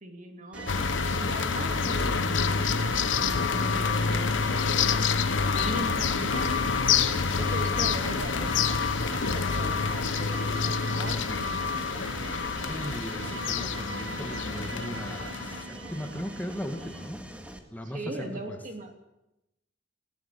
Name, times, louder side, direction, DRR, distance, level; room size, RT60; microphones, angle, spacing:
voice 1, 0.0-2.9 3.5-6.6 7.4-8.8 9.1-11.6 17.8-18.9, right 1 dB, 45° right, 5 dB, 2.9 m, -39 dB
Mechanisms, 0.5-17.6, equal, 5° right, 1.9 m, -44 dB
sound 1, 0.5-17.1, right 3 dB, 85° right, 1.4 m, -41 dB
sound 2, 0.7-15.6, left 5 dB, 90° left, 1.0 m, -27 dB
voice 2, 12.6-17.2 17.7-18.6, equal, 10° left, 5 dB, 2.0 m, -38 dB
20.0 x 16.5 x 8.6 m, 0.92 s
head